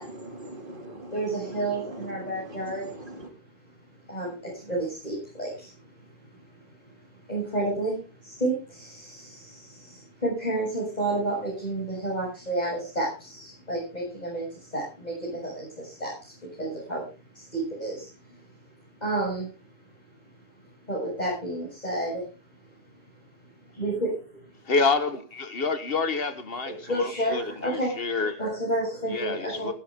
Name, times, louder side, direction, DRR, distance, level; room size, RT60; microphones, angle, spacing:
voice 1, 0.0-3.3, right 1 dB, 40° right, 3.0 m, -41 dB
voice 2, 1.1-2.9 4.1-5.7 6.0-6.1 7.3-17.0 17.3-18.1 19.0-19.5 20.9-22.3 23.7-24.4 26.6-27.9 28.4-29.7, right 1 dB, 35° left, 7.6 m, -30 dB
voice 3, 24.7-28.4 29.1-29.7, left 4 dB, 50° left, 1.8 m, -28 dB
16.5 x 12.0 x 3.7 m
omnidirectional pair, 1.3 m